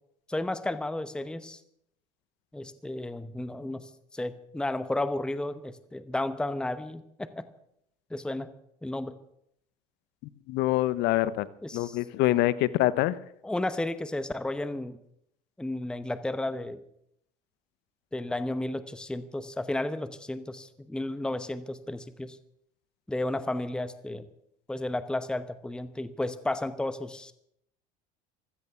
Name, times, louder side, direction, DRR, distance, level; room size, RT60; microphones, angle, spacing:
voice 1, 0.3-1.6 2.5-7.4 8.1-8.5 8.8-9.1 11.6-12.0 13.4-15.0 15.6-16.8 18.1-22.4 23.1-24.3 24.7-27.3, left 1 dB, 5° left, 12 dB, 0.9 m, -33 dB
voice 2, 10.5-11.5 11.7-13.2, left 15 dB, 65° left, 18 dB, 0.9 m, -25 dB
15.5 x 13.5 x 7.0 m, 0.74 s
supercardioid pair, 105°, 19 cm